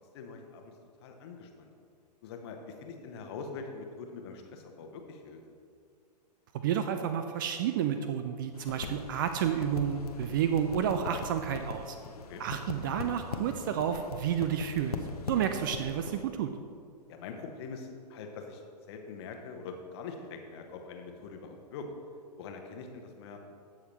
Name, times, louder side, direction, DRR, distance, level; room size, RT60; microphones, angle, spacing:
voice 1, 0.1-0.7 1.0-1.7 2.2-5.4 12.3-12.4 17.1-18.6 18.9-21.9 22.4-23.4, left 4 dB, 40° left, 4 dB, 1.1 m, -43 dB
voice 2, 6.5-12.0 12.4-15.0 15.3-16.5, right 8 dB, 30° right, 8 dB, 0.4 m, -30 dB
sound 1, 8.5-16.3, left 5 dB, 60° left, 0.9 m, -41 dB
15.0 x 6.3 x 3.1 m, 2.3 s
figure-of-eight pair, 110°, 21 cm